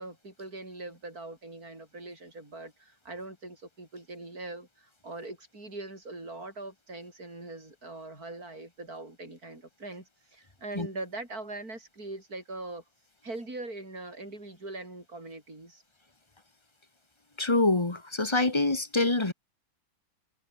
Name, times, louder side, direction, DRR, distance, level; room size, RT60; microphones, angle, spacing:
voice 1, 0.0-12.8 13.2-15.8, right 2 dB, 45° right, 8.4 m, -42 dB
voice 2, 17.4-19.3, left 2 dB, 15° left, 1.7 m, -25 dB
omnidirectional pair, 2.1 m